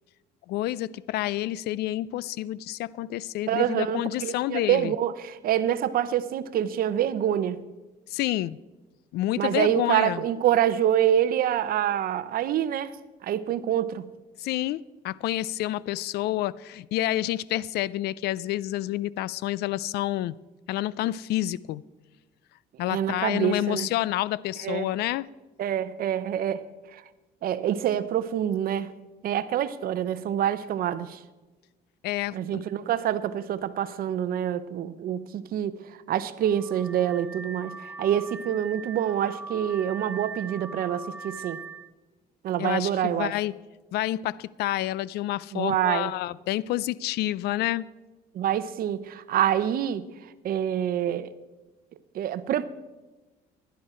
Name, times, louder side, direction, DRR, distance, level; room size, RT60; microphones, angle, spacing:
voice 1, 0.5-4.9 8.1-8.6 9.1-10.2 14.4-20.4 20.7-21.8 22.8-25.3 32.0-32.6 42.6-43.5 43.9-47.9, left 15 dB, 75° left, 0.4 m, -29 dB
voice 2, 3.5-7.6 9.4-13.0 13.2-14.1 22.8-23.9 24.6-24.9 25.6-26.6 26.9-27.0 27.4-28.9 29.2-31.2 32.3-41.6 42.4-43.3 45.5-46.1 48.3-50.1 50.4-51.3 52.1-52.7, right 10 dB, 60° right, 0.7 m, -26 dB
Car / Alarm, 36.4-41.9, right 4 dB, 10° right, 0.6 m, -40 dB
15.5 x 11.0 x 4.4 m
cardioid pair, 110°, 17 cm